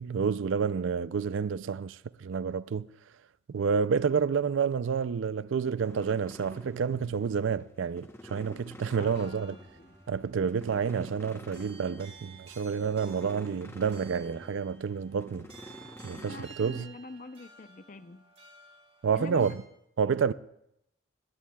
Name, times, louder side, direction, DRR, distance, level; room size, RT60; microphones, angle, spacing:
voice 1, 0.0-2.9 3.5-9.6 10.1-15.5 16.0-16.9 19.0-19.5 20.0-20.3, right 6 dB, 70° right, 0.4 m, -29 dB
sound 1, 5.8-16.5, left 1 dB, 10° left, 0.9 m, -49 dB
voice 2, 9.0-9.9 16.1-18.2 19.1-19.6, left 3 dB, 40° left, 0.5 m, -45 dB
sound 2, 9.1-19.6, right 5 dB, 30° right, 2.3 m, -54 dB
20.0 x 19.0 x 2.3 m
head